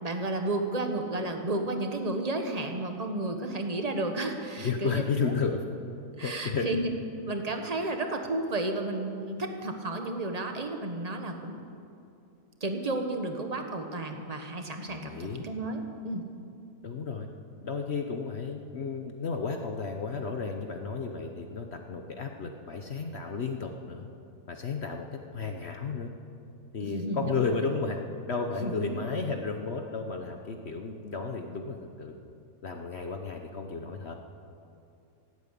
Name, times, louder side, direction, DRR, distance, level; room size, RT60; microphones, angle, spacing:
voice 1, 0.0-5.3 6.2-6.9 7.3-11.6 12.6-16.2 26.8-27.7 28.6-29.0, right 2 dB, 25° right, 5 dB, 1.2 m, -32 dB
voice 2, 4.6-5.6 6.2-6.7 7.8-7.9 14.9-15.4 16.8-17.3 17.6-24.1 24.5-25.0 25.3-26.1 26.7-28.0 28.3-32.1 32.6-34.1, left 5 dB, 50° left, 4 dB, 1.0 m, -33 dB
17.0 x 9.0 x 8.4 m, 2.7 s
omnidirectional pair, 1.7 m